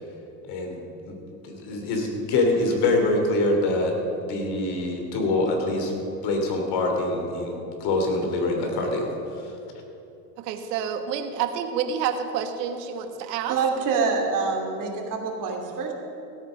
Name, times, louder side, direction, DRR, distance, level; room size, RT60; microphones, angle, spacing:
voice 1, 0.5-1.2 1.4-3.9 4.2-5.9 6.2-9.1, left 2 dB, 50° left, 3 dB, 3.1 m, -25 dB
voice 2, 10.4-13.6, right 8 dB, 75° right, 7 dB, 1.5 m, -28 dB
voice 3, 13.5-15.9, right 4 dB, 40° right, 1 dB, 2.8 m, -26 dB
16.5 x 9.0 x 6.3 m, 2.9 s
supercardioid pair, 115°, 49 cm